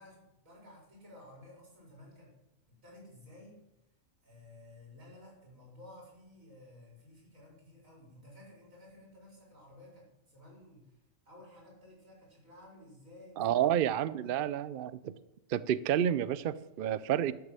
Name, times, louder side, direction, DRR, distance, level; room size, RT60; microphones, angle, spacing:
voice 1, 0.0-2.3 2.7-3.6 4.2-11.0 11.3-13.5 13.9-14.4, left 1 dB, 90° right, -2 dB, 5.2 m, -54 dB
voice 2, 13.4-15.1 15.5-17.3, right 10 dB, 60° right, 16 dB, 0.6 m, -30 dB
12.5 x 6.5 x 7.6 m, 0.89 s
omnidirectional pair, 1.4 m